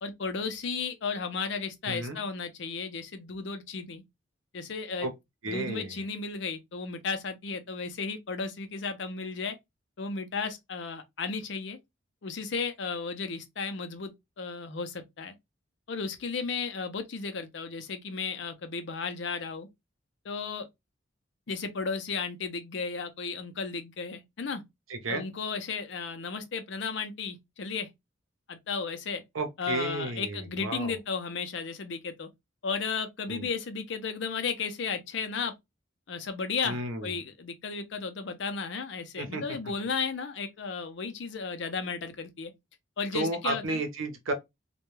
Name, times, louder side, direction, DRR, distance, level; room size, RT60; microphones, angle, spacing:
voice 1, 0.0-4.0 4.5-5.1 5.5-9.6 10.0-11.8 12.2-14.1 14.4-15.3 15.9-19.7 20.2-20.7 21.5-24.6 25.1-27.9 28.5-29.2 29.6-32.3 32.6-35.5 36.1-42.5 43.0-43.8, left 5 dB, 60° left, 0.5 m, -34 dB
voice 2, 1.9-2.2 5.0-5.1 5.4-6.0 24.9-25.2 29.3-31.0 33.3-33.5 36.6-37.1 39.2-39.6 43.1-44.3, right 2 dB, 90° right, 0.7 m, -33 dB
2.2 x 2.2 x 3.0 m
head